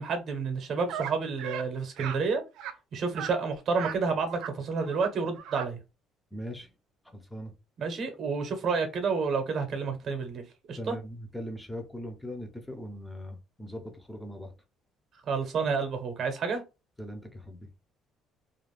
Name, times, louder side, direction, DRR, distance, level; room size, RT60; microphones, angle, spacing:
voice 1, 0.0-2.4 2.9-5.8 7.8-10.4 10.7-11.0 15.3-16.6, right 5 dB, 45° right, 0.8 m, -30 dB
sound 1, 0.9-1.1 1.4-1.6 2.0-2.2 2.6-2.7 3.1-3.3 3.7-4.0 4.3-4.5 4.8-5.1 5.4-5.7, right 9 dB, 80° right, 0.4 m, -37 dB
voice 2, 6.3-6.7 7.1-7.5 10.8-14.5 17.0-17.7, equal, 5° left, 0.5 m, -40 dB
2.5 x 2.2 x 3.2 m
cardioid pair, 155°, 0 cm